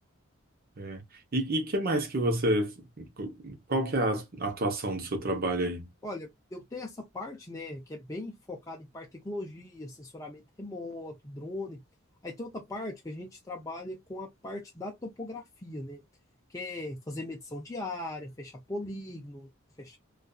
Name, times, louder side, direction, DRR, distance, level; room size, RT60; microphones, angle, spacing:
voice 1, 1.3-5.9, right 1 dB, 45° right, 0.8 m, -29 dB
voice 2, 6.0-11.8 12.2-16.0 16.5-19.5 19.8-20.0, left 2 dB, 15° left, 0.5 m, -39 dB
2.6 x 2.4 x 2.2 m
head